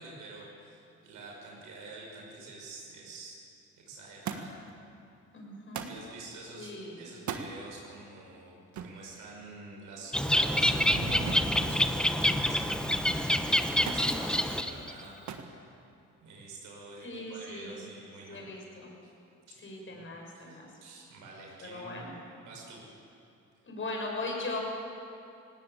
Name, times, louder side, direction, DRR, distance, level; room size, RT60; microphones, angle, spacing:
voice 1, 0.0-3.4 3.8-4.6 5.8-10.7 11.1-15.7 16.2-18.4 19.0-19.1 19.5-20.0 20.3-22.1 22.4-23.0, right 3 dB, 90° right, -2 dB, 6.0 m, -48 dB
Thump thud, 4.2-4.7 5.7-6.0 7.1-7.5 8.7-9.0 11.3-11.6 11.9-12.5 13.9-14.1 15.3-15.5 16.5-17.0 17.9-18.0, right 7 dB, 70° right, 1.7 m, -39 dB
voice 2, 5.3-5.9 6.6-7.0 17.0-17.8 18.3-18.9 19.6-20.7 21.6-22.1 23.6-24.6, left 2 dB, 40° left, 0 dB, 6.2 m, -39 dB
sound 1, 9.6-12.5, right 2 dB, 55° right, 6.0 m, -41 dB
Bird, 10.1-14.9, equal, 5° left, 1.0 m, -27 dB
19.0 x 18.0 x 8.3 m, 2.6 s
cardioid pair, 90°, 30 cm